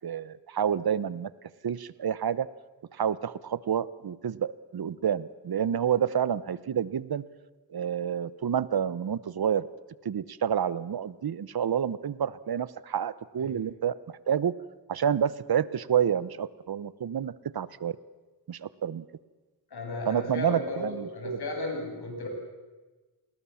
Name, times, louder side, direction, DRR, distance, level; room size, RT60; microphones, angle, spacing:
voice 1, 0.0-1.3 1.6-2.5 2.9-7.2 7.7-9.7 10.0-13.9 14.3-14.5 14.9-18.0 18.5-19.0 20.0-21.4, right 8 dB, 65° right, 18 dB, 1.0 m, -29 dB
voice 2, 19.7-22.3, left 2 dB, 75° left, 2 dB, 7.7 m, -34 dB
28.5 x 20.5 x 7.2 m, 1.2 s
cardioid pair, 60°, 39 cm